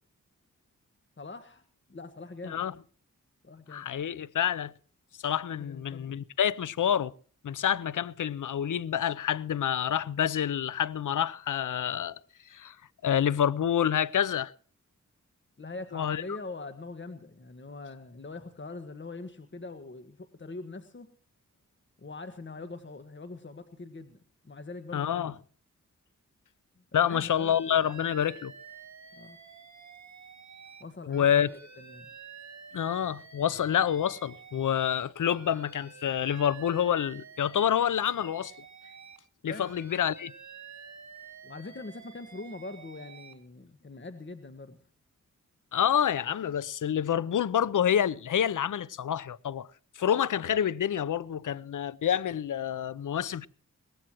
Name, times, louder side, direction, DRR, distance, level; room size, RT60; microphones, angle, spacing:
voice 1, 1.2-1.6 1.9-2.6 3.4-3.9 5.5-6.1 15.6-21.1 22.0-25.4 26.8-27.6 27.8-28.1 29.1-29.4 30.8-32.1 39.5-39.7 41.4-44.8, left 3 dB, 35° left, 1.6 m, -43 dB
voice 2, 3.7-4.7 5.2-7.1 7.4-12.2 12.5-12.8 13.0-14.5 15.9-16.2 24.9-25.3 26.9-28.5 31.1-31.5 32.7-38.5 39.4-40.3 45.7-49.7 50.0-53.5, left 9 dB, 75° left, 0.7 m, -28 dB
Alarm, 27.0-30.8 31.1-35.0 35.3-39.2 39.5-43.3, right 6 dB, 60° right, 2.0 m, -49 dB
22.0 x 17.5 x 3.0 m
cardioid pair, 60°, 31 cm